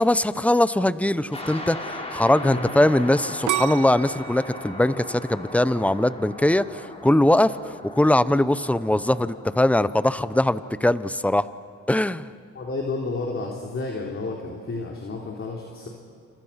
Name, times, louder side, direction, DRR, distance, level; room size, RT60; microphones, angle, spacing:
voice 1, 0.0-11.5 11.9-12.3, left 1 dB, 5° left, 15 dB, 0.8 m, -21 dB
sound 1, 1.3-10.7, left 2 dB, 20° left, 4.8 m, -38 dB
voice 2, 2.4-2.8 12.5-15.9, left 3 dB, 45° left, -1 dB, 3.6 m, -31 dB
sound 2, 3.5-6.4 6.9-7.4, right 13 dB, 80° right, 0.9 m, -31 dB
29.0 x 26.5 x 5.9 m, 2.4 s
cardioid pair, 90°, 30 cm